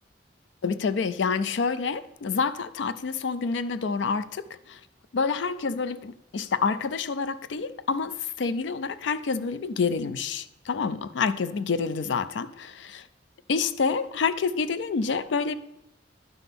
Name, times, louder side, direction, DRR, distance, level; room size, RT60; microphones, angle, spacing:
voice 1, 0.6-4.8 5.1-13.0 13.5-15.5, left 5 dB, 75° left, 0.4 m, -28 dB
11.0 x 5.8 x 3.6 m
head